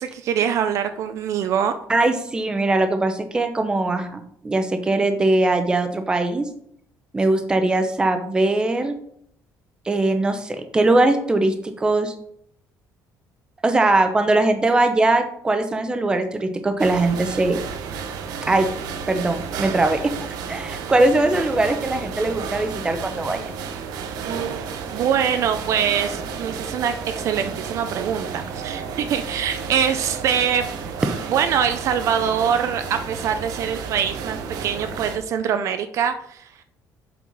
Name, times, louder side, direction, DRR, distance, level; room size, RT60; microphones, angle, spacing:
voice 1, 0.0-1.8 24.9-30.7 31.3-36.6, right 8 dB, 50° right, 8 dB, 0.5 m, -23 dB
voice 2, 1.9-6.4 7.1-8.9 9.9-12.1 13.6-17.6 18.5-18.7 19.1-20.1 20.5-23.5, right 2 dB, 10° right, 7 dB, 0.7 m, -21 dB
sound 1, 16.8-35.2, right 6 dB, 70° right, 0.9 m, -32 dB
7.4 x 5.5 x 4.1 m, 0.68 s
cardioid pair, 175°, 7 cm